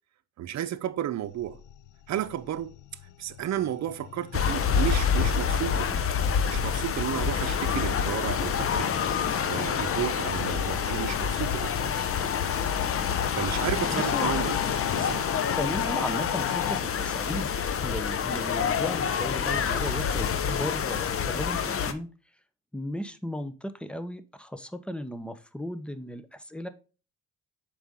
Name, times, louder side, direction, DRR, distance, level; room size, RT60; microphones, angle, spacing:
voice 1, 0.4-1.6 2.1-2.7 3.2-6.0 6.5-8.9 9.4-12.1 13.3-14.6 14.9-15.3, right 11 dB, 65° right, 0.8 m, -32 dB
sound 1, 1.3-16.8, left 13 dB, 85° left, 0.6 m, -38 dB
sound 2, 4.3-21.9, left 7 dB, 45° left, 0.8 m, -27 dB
voice 2, 13.9-14.3 15.5-17.5 17.8-22.1 22.7-26.7, equal, 5° left, 0.8 m, -35 dB
7.0 x 5.0 x 3.7 m
cardioid pair, 90°, 30 cm